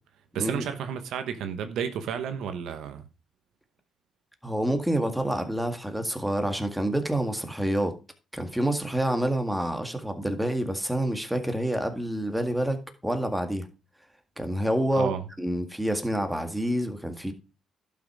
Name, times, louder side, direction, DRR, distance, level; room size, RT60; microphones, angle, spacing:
voice 1, 0.3-3.0 14.9-15.2, right 8 dB, 80° right, 1.1 m, -31 dB
voice 2, 4.4-8.0 8.3-13.7 14.4-17.3, right 1 dB, 5° right, 1.9 m, -28 dB
11.5 x 5.9 x 4.9 m
cardioid pair, 90°, 0 cm